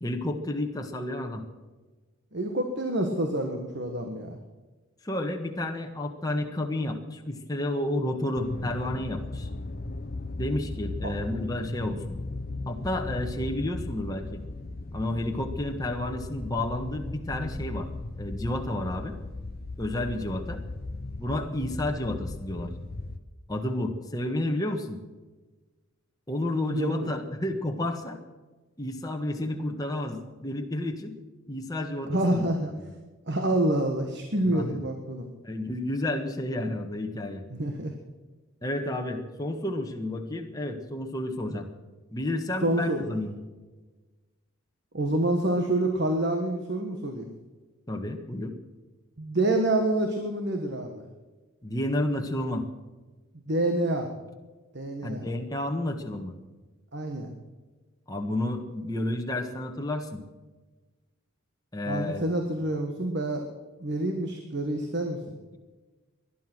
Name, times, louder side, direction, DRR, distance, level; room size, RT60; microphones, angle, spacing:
voice 1, 0.0-1.4 5.0-9.5 10.4-12.2 12.7-14.4 14.9-17.9 18.2-19.2 19.8-20.6 21.2-22.7 23.5-25.0 26.3-28.2 28.8-31.1 31.5-32.5 32.8-32.9 34.5-34.8 35.4-37.4 38.6-41.7 42.1-43.3 47.9-48.5 51.6-52.7 55.0-56.4 58.1-60.2 61.7-62.2, left 1 dB, 15° left, 3 dB, 1.5 m, -31 dB
voice 2, 2.3-4.4 11.0-11.1 26.7-26.9 32.1-32.7 33.3-35.3 37.5-37.9 42.6-43.1 44.9-47.3 49.2-51.0 53.5-54.1 54.7-55.3 56.9-57.3 61.9-63.4 63.8-65.3, right 1 dB, 50° right, 4 dB, 1.5 m, -27 dB
sound 1, 8.4-23.2, left 2 dB, 45° left, 0.9 m, -37 dB
20.0 x 11.5 x 6.2 m, 1.3 s
head